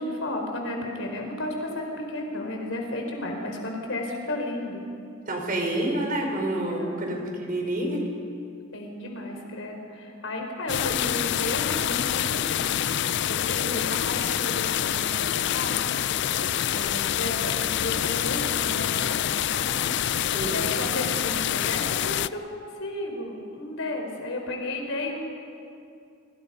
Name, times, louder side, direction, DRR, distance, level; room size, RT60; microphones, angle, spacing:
voice 1, 0.0-4.8 6.7-7.2 8.7-13.0 13.3-15.9 16.4-19.7 20.5-25.2, left 1 dB, 75° left, 2 dB, 4.4 m, -33 dB
voice 2, 5.3-8.0 20.3-20.7, right 1 dB, 45° right, 1 dB, 5.0 m, -28 dB
sound 1, 10.7-22.3, left 10 dB, 60° left, 0.5 m, -26 dB
26.5 x 24.5 x 5.5 m, 2.5 s
head